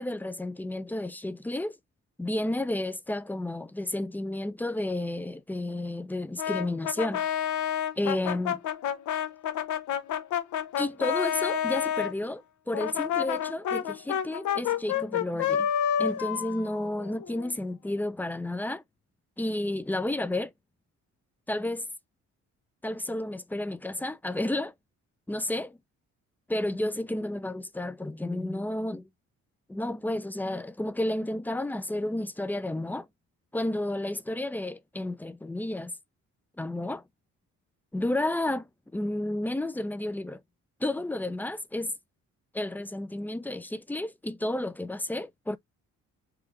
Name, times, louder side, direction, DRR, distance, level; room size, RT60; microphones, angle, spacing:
voice 1, 0.0-1.8 2.2-7.2 8.0-8.6 10.8-15.7 16.0-18.8 19.4-20.5 21.5-21.8 22.8-24.7 25.3-25.7 26.5-29.1 29.7-33.1 33.5-35.9 36.6-37.0 37.9-38.7 38.9-40.4 40.8-41.9 42.5-45.6, left 1 dB, 5° left, 0.4 m, -31 dB
Brass instrument, 6.4-12.1 12.7-17.5, left 9 dB, 75° left, 0.8 m, -29 dB
4.8 x 2.4 x 3.2 m
cardioid pair, 90°, 30 cm